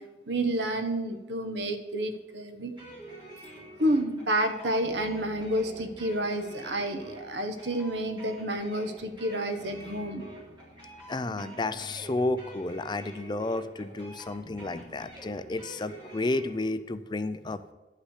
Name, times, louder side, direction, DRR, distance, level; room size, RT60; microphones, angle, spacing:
voice 1, 0.0-2.7 3.8-10.3, right 1 dB, 70° right, 8 dB, 1.2 m, -30 dB
sound 1, 2.7-16.6, right 1 dB, 25° right, 3.8 m, -46 dB
voice 2, 11.1-17.6, left 2 dB, 25° left, 12 dB, 0.4 m, -31 dB
11.5 x 5.8 x 8.2 m, 1.2 s
head